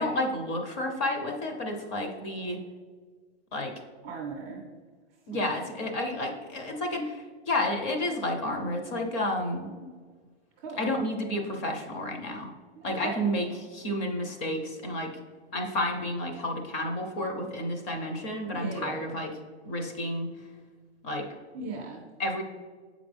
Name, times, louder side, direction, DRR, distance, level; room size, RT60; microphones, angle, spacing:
voice 1, 0.0-2.6 3.5-3.7 5.3-9.7 10.8-12.5 12.8-15.2 15.5-19.4 19.6-20.5 21.0-21.3 22.2-22.4, left 1 dB, 25° left, 2 dB, 0.8 m, -31 dB
voice 2, 4.0-4.6 5.3-5.7 10.6-10.8 12.8-13.2 18.5-19.1 21.5-22.1, right 3 dB, 15° right, -3 dB, 0.4 m, -38 dB
7.4 x 5.0 x 3.4 m, 1.5 s
hypercardioid pair, 150°, 35 cm